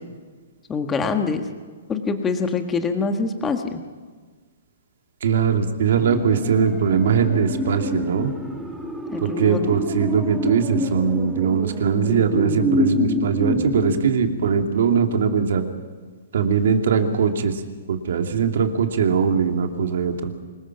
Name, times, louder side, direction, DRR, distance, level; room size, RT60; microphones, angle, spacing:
voice 1, 0.7-1.4 1.9-3.8 9.1-9.6, left 4 dB, 10° left, 6 dB, 1.5 m, -24 dB
voice 2, 5.2-8.3 9.2-15.6 16.3-17.6 17.9-20.3, right 6 dB, 65° right, 5 dB, 2.4 m, -21 dB
sound 1, 5.9-15.1 15.4-15.5, left 1 dB, 5° right, 1.7 m, -27 dB
25.0 x 21.0 x 6.0 m, 1.5 s
hypercardioid pair, 160°, 0 cm